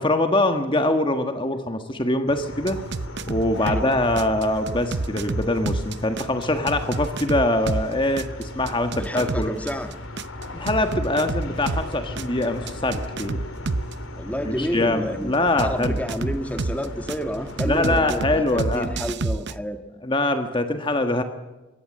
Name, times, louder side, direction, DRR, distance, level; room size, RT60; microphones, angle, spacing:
voice 1, 0.0-2.8 3.3-9.6 10.5-13.4 14.4-16.0 17.6-18.9 20.0-21.2, left 1 dB, 25° left, 7 dB, 1.4 m, -23 dB
sound 1, 2.3-18.4, left 1 dB, 75° left, 3.3 m, -37 dB
sound 2, 2.7-3.9 4.2-7.9 8.2-11.9 12.2-13.9 15.6-17.2 17.6-19.5, right 3 dB, 55° right, 0.8 m, -28 dB
voice 2, 9.0-9.9 14.1-19.8, equal, 5° left, 7 dB, 1.6 m, -30 dB
25.0 x 22.0 x 7.6 m, 1.1 s
head